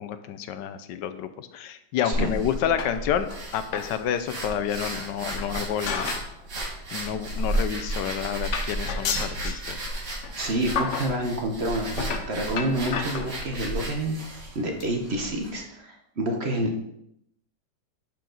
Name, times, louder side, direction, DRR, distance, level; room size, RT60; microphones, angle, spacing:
voice 1, 0.0-6.1 6.6-9.8, left 9 dB, 85° left, 11 dB, 1.3 m, -29 dB
sound 1, 2.1-15.6, right 1 dB, 75° right, 2.4 m, -33 dB
sound 2, 2.8-3.4 3.7-4.0 4.3-4.4 5.3-6.4 6.7-6.9 7.7-7.8 8.0-8.2 8.5-9.7 10.2-10.4 10.8-11.2 11.9-13.7 14.3-14.5 14.8-14.9 15.2-15.3 15.5-15.6, left 5 dB, 55° left, 0.9 m, -32 dB
voice 2, 10.4-16.8, right 1 dB, 45° right, 3 dB, 1.1 m, -28 dB
12.0 x 4.5 x 3.9 m, 0.77 s
omnidirectional pair, 1.9 m